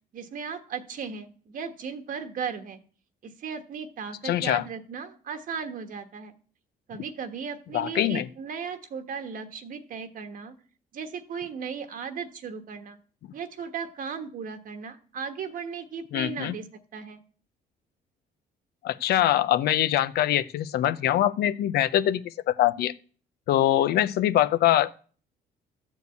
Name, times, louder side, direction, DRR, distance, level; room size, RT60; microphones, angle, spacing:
voice 1, 0.1-2.8 3.2-6.3 6.9-10.5 10.9-13.0 13.3-16.7 16.9-17.2, right 6 dB, 55° right, 1.3 m, -36 dB
voice 2, 4.2-4.6 7.7-8.3 16.1-16.5 18.8-22.9 23.5-24.9, left 12 dB, 70° left, 0.7 m, -23 dB
13.0 x 4.7 x 8.3 m
cardioid pair, 110°, 17 cm